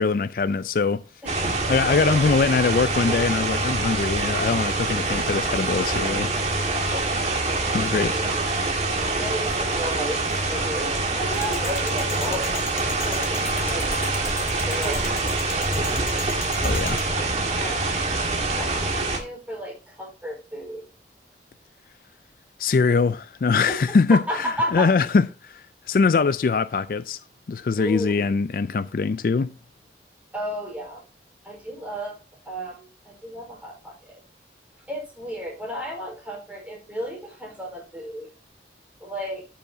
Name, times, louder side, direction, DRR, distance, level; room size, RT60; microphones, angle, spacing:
voice 1, 0.0-1.0 1.7-6.3 7.7-8.2 16.6-17.0 22.6-27.2 27.5-29.5, left 4 dB, 50° left, 0.3 m, -22 dB
voice 2, 1.2-1.6 1.9-2.2 6.7-7.2 7.6-8.4 9.1-10.2 10.5-13.9 14.6-16.2 17.5-18.0 18.5-20.9 23.7-24.9 27.8-28.3 30.3-31.0 31.4-32.2 32.4-34.2 34.9-38.3 39.0-39.5, equal, 10° right, 4.3 m, -33 dB
sound 1, 1.3-19.2, right 2 dB, 35° right, 1.7 m, -25 dB
sound 2, 11.3-17.0, left 3 dB, 15° left, 1.4 m, -37 dB
12.5 x 6.9 x 2.7 m
head